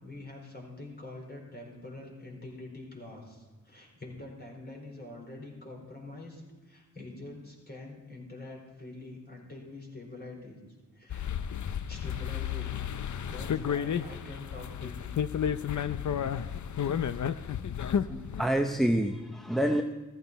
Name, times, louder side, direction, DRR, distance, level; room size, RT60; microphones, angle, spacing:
voice 1, 0.0-10.6 10.9-11.6 11.9-12.7 13.3-15.1, left 2 dB, 35° left, -1 dB, 4.6 m, -45 dB
sound 1, 11.1-18.4, left 8 dB, 70° left, 0.6 m, -32 dB
voice 2, 18.0-19.8, right 1 dB, ahead, 4 dB, 0.7 m, -27 dB
15.0 x 14.5 x 4.1 m, 1.2 s
wide cardioid pair, 90°, 30 cm